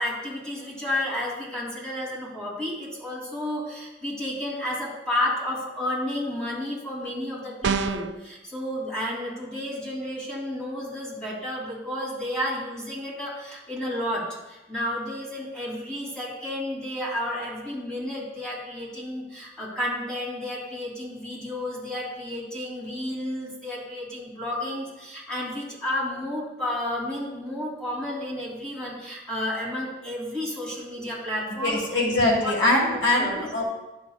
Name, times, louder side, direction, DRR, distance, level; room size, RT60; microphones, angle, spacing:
voice 1, 0.0-32.1 32.4-32.5 32.9-33.6, left 1 dB, 5° left, -7 dB, 3.1 m, -31 dB
sound 1, 7.6-8.2, right 5 dB, 65° right, 0.4 m, -25 dB
voice 2, 31.6-33.6, left 1 dB, 70° left, -2 dB, 2.0 m, -22 dB
11.5 x 8.0 x 2.4 m, 1.0 s
head